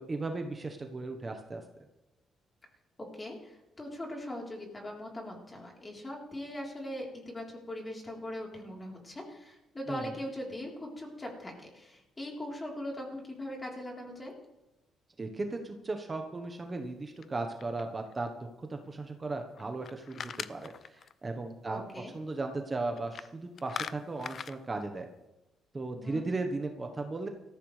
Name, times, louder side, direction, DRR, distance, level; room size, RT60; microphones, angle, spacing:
voice 1, 0.0-1.6 9.9-10.1 15.2-25.1 25.7-27.3, right 3 dB, 25° right, 4 dB, 1.2 m, -36 dB
voice 2, 3.1-14.3 21.7-22.1 26.0-26.4, left 1 dB, 20° left, -1 dB, 3.9 m, -40 dB
sound 1, 17.2-18.1 19.5-21.1 23.0-23.3 23.6-24.6, left 7 dB, 55° left, 0.5 m, -41 dB
17.5 x 14.0 x 3.4 m, 0.99 s
cardioid pair, 90°, 0 cm